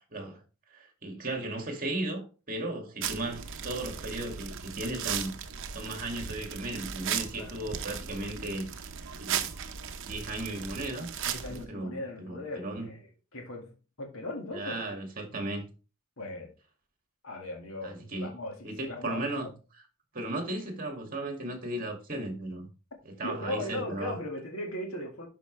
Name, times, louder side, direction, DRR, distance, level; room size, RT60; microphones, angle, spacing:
voice 1, 0.7-5.3 5.7-8.7 9.2-9.5 10.0-11.1 11.5-12.9 14.5-15.6 17.8-18.3 18.6-19.5 20.1-22.7 23.1-24.1, right 2 dB, 40° right, 2.3 m, -36 dB
sound 1, 3.0-11.6, right 8 dB, 60° right, 0.8 m, -37 dB
voice 2, 11.0-13.0 13.3-13.7 14.0-14.9 16.2-16.5 17.2-19.5 23.2-25.3, left 1 dB, 70° left, 2.0 m, -38 dB
11.5 x 5.0 x 3.3 m
head